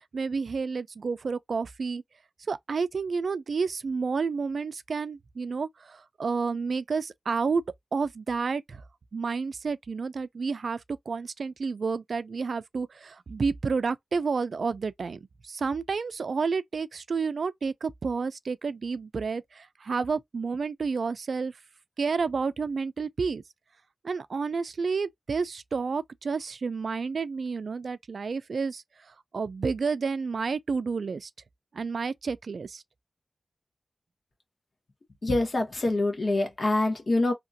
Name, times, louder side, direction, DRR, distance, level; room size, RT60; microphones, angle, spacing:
voice 1, 0.0-2.0 2.5-7.6 7.9-8.8 9.1-21.6 22.0-23.4 24.0-28.8 29.3-31.3 31.7-32.8, right 5 dB, 85° right, 0.3 m, -30 dB
voice 2, 35.2-37.3, left 2 dB, 60° left, 1.2 m, -25 dB
2.8 x 2.4 x 2.7 m
wide cardioid pair, 65°, 0 cm